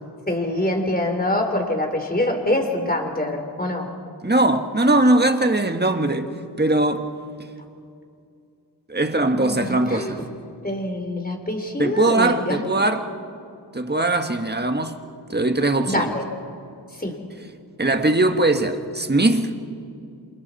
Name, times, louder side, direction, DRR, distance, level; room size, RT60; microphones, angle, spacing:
voice 1, 0.3-3.9 9.3-10.2 10.6-12.9 15.9-16.2 17.0-17.2, left 1 dB, 20° left, 3.5 m, -25 dB
voice 2, 4.2-6.3 6.6-7.1 8.9-10.2 11.8-13.1 13.7-15.0 15.3-16.1 17.8-19.5, right 2 dB, 25° right, 1.6 m, -20 dB
28.5 x 27.0 x 4.2 m
wide cardioid pair, 65°, 42 cm